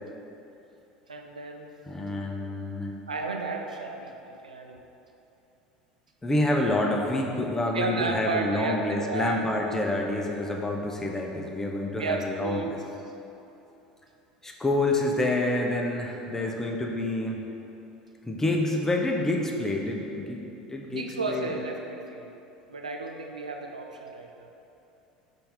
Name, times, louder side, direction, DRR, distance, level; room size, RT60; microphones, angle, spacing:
voice 1, 1.1-1.7 3.1-4.8 7.7-9.4 12.0-12.7 20.9-22.3 22.7-24.5, right 3 dB, 80° right, 3 dB, 0.4 m, -33 dB
voice 2, 1.8-2.9 6.2-12.8 14.4-17.4 18.3-21.5, left 1 dB, 10° left, 0 dB, 0.7 m, -28 dB
5.6 x 3.3 x 5.5 m, 2.9 s
figure-of-eight pair, 70°, 4 cm